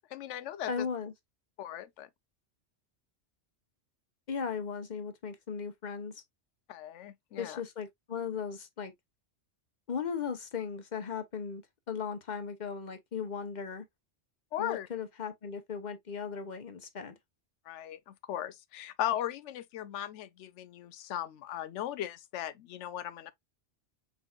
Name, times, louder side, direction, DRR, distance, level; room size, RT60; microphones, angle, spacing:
voice 1, 0.1-0.9 1.6-2.1 6.7-7.6 14.5-14.9 17.7-23.3, left 11 dB, 90° left, 0.9 m, -37 dB
voice 2, 0.7-1.1 4.3-6.2 7.4-8.9 9.9-11.6 11.9-13.8 14.6-17.2, left 6 dB, 45° left, 0.9 m, -37 dB
4.6 x 4.3 x 2.3 m
omnidirectional pair, 1.2 m